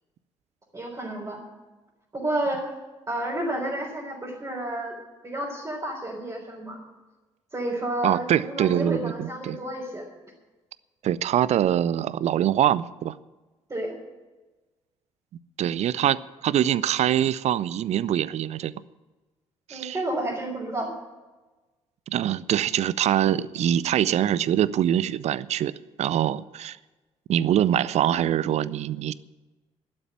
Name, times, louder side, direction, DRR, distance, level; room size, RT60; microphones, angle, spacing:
voice 1, 0.7-1.4 2.1-2.7 3.1-4.9 5.2-6.8 7.5-10.1 13.7-14.0 19.7-20.9, right 1 dB, 25° right, -5 dB, 3.9 m, -30 dB
voice 2, 8.0-9.6 11.0-13.2 15.6-18.7 19.7-20.0 22.1-25.7 26.0-26.8 27.3-29.1, right 11 dB, 45° right, 19 dB, 0.5 m, -24 dB
12.0 x 8.7 x 8.9 m, 1.2 s
figure-of-eight pair, 45°, 15 cm